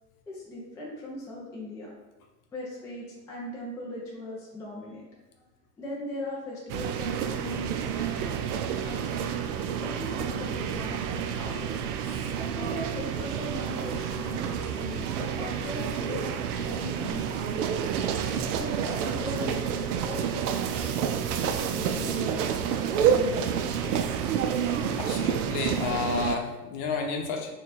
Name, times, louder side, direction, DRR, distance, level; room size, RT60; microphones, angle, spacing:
voice 1, 0.3-1.9 2.5-5.0 5.8-8.3 8.8-9.3 9.8-11.8 12.4-17.9 18.5-24.0, left 1 dB, 5° left, -5 dB, 0.3 m, -39 dB
sound 1, 6.7-26.4, right 8 dB, 65° right, 0.6 m, -29 dB
voice 2, 25.0-27.5, left 5 dB, 45° left, 3 dB, 0.8 m, -31 dB
4.5 x 2.4 x 4.0 m, 1.1 s
hypercardioid pair, 110°, 49 cm